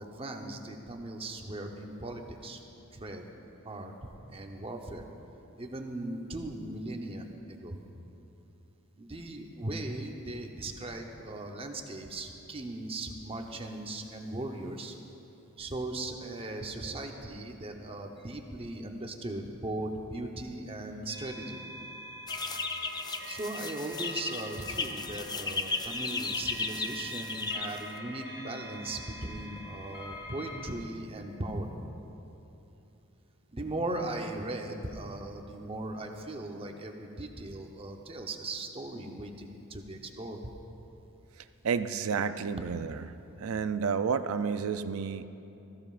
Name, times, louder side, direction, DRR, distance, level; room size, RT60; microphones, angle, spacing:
voice 1, 0.0-2.6 2.9-3.2 3.6-3.9 4.3-5.0 5.6-7.8 9.0-15.0 15.6-21.6 23.2-31.7 33.5-40.4, right 2 dB, 25° right, 3 dB, 0.9 m, -38 dB
sound 1, 21.0-30.6, equal, 50° left, 2.6 m, -44 dB
sound 2, 22.3-28.0, left 4 dB, 20° left, 0.5 m, -35 dB
voice 2, 41.6-43.0 43.4-45.2, right 6 dB, 75° right, 11 dB, 0.5 m, -30 dB
19.5 x 14.5 x 2.5 m, 2.9 s
head